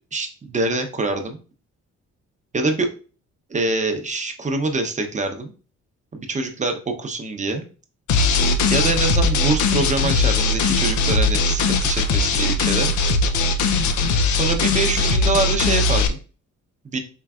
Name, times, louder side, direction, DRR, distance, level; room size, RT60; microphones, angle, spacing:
voice 1, 0.1-1.4 2.5-2.9 3.5-5.5 6.1-7.6 8.4-12.9 14.3-16.2 16.8-17.0, right 2 dB, 25° right, 5 dB, 0.8 m, -25 dB
sound 1, 8.1-16.1, left 3 dB, 70° left, 0.6 m, -19 dB
4.6 x 3.2 x 2.4 m, 0.36 s
cardioid pair, 90°, 30 cm